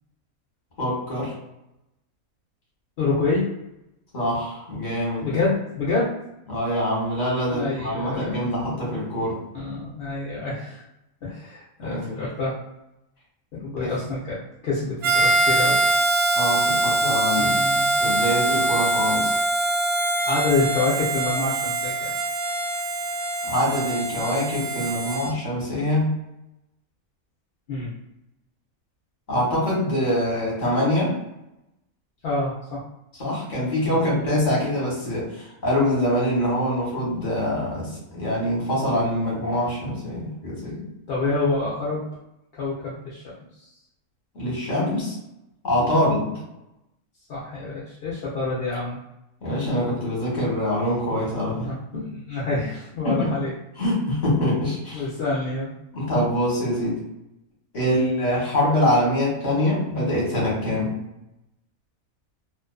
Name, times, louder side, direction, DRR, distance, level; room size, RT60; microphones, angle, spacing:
voice 1, 0.8-1.3 4.1-5.3 6.5-9.4 11.8-12.2 13.8-13.9 16.3-17.5 18.0-19.3 23.4-26.1 29.3-31.2 33.2-40.8 44.3-45.2 45.6-46.4 49.4-52.0 53.0-53.3 53.8-55.0 55.9-57.0 57.7-60.9, left 1 dB, 35° left, -5 dB, 1.0 m, -24 dB
voice 2, 3.0-3.5 5.2-6.1 7.5-8.4 9.5-10.8 11.2-12.6 13.5-14.4 14.6-15.8 17.4-18.1 20.3-22.1 27.7-27.9 32.2-32.8 33.8-34.4 41.1-42.0 42.5-43.7 45.8-46.0 47.3-49.0 51.6-53.5 54.9-55.7 57.9-58.1, left 3 dB, 60° left, -6 dB, 0.7 m, -27 dB
Harmonica, 15.0-25.3, right 2 dB, 55° right, 0.8 m, -23 dB
2.4 x 2.4 x 2.3 m, 0.89 s
omnidirectional pair, 1.5 m